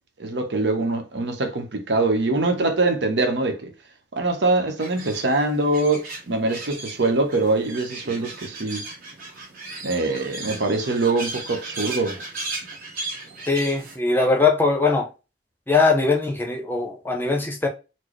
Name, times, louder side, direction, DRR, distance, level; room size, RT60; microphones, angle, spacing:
voice 1, 0.2-3.7 4.1-8.8 9.8-12.2, right 2 dB, 80° right, 0.8 m, -23 dB
sound 1, 4.8-14.0, right 3 dB, 55° right, 1.3 m, -36 dB
voice 2, 13.5-15.1 15.7-17.7, left 4 dB, 10° left, 0.6 m, -21 dB
4.4 x 2.0 x 3.0 m
head